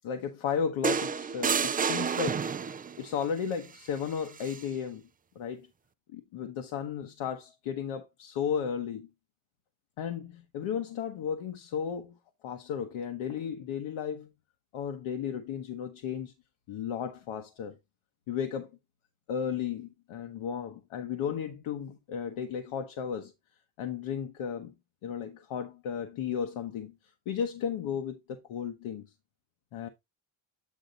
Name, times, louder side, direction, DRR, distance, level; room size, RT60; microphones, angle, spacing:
voice 1, 0.0-2.4 3.0-5.0 5.3-5.7 6.1-9.1 10.0-12.2 12.4-14.3 14.7-16.3 16.7-17.8 18.3-18.7 19.3-23.3 23.8-24.7 25.0-26.9 27.3-29.1 29.7-29.9, left 7 dB, 80° left, 1.2 m, -34 dB
sound 1, 0.8-3.0 4.4-4.6, right 6 dB, 20° right, 0.3 m, -29 dB
8.7 x 3.8 x 4.0 m
cardioid pair, 95°, 49 cm